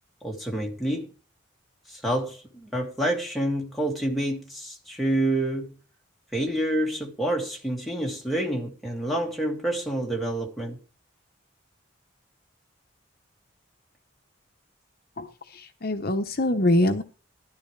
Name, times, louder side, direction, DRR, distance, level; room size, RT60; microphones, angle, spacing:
voice 1, 0.2-1.1 1.9-5.8 6.3-10.8, right 1 dB, ahead, 2.3 m, -28 dB
voice 2, 15.2-17.0, left 1 dB, 45° left, 0.9 m, -24 dB
13.0 x 12.0 x 3.3 m
head